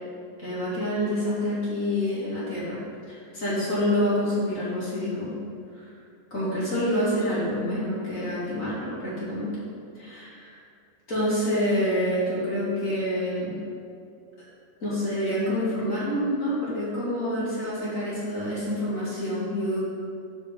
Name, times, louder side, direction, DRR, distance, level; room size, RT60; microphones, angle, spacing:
voice 1, 0.4-2.8 3.1-5.3 5.7-5.9 6.3-9.6 9.9-10.6 11.1-13.6 14.8-19.8, equal, 25° left, -9 dB, 1.8 m, -27 dB
14.5 x 5.0 x 3.8 m, 2.5 s
omnidirectional pair, 5.0 m